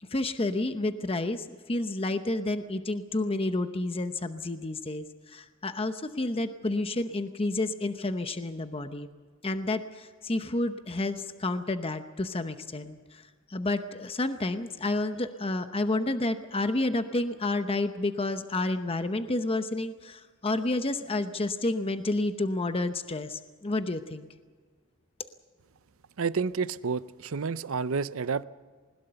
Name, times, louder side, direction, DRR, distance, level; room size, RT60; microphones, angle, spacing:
voice 1, 0.0-9.1 9.4-24.3, left 2 dB, 25° left, 9 dB, 0.8 m, -30 dB
voice 2, 26.2-28.4, right 5 dB, 70° right, 15 dB, 0.6 m, -30 dB
21.0 x 20.0 x 6.9 m, 1.5 s
head